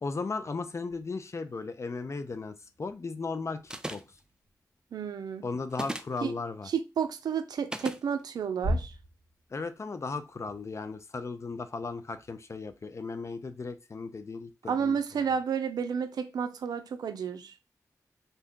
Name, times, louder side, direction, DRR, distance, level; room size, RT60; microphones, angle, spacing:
voice 1, 0.0-4.0 5.4-6.7 9.5-15.3, left 4 dB, 45° left, 0.4 m, -36 dB
sound 1, 0.9-10.9, equal, 85° left, 1.1 m, -42 dB
sound 2, 3.7-4.2 5.7-6.2 7.7-8.0, right 1 dB, 10° right, 0.4 m, -36 dB
voice 2, 4.9-5.5 6.2-6.3 6.7-8.9 14.7-17.5, right 7 dB, 85° right, 0.4 m, -31 dB
2.7 x 2.1 x 3.6 m
cardioid pair, 50°, 7 cm